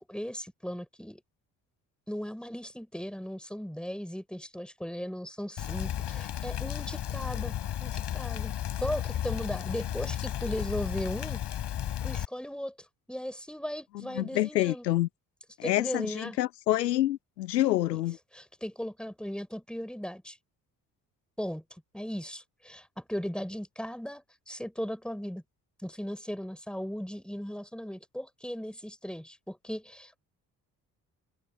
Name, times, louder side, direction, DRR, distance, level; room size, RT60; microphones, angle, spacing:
voice 1, 0.1-1.2 2.1-8.5 8.8-11.4 12.0-12.7 13.1-14.8 15.6-16.4 17.9-18.0 18.3-20.4 21.4-21.6 21.9-25.4 25.8-30.2, equal, ahead, 5.7 m, -37 dB
Rain, 5.6-12.2, left 11 dB, 55° left, 6.3 m, -33 dB
voice 2, 14.1-15.1 15.6-18.2, left 15 dB, 80° left, 1.0 m, -27 dB
figure-of-eight pair, 45°, 48 cm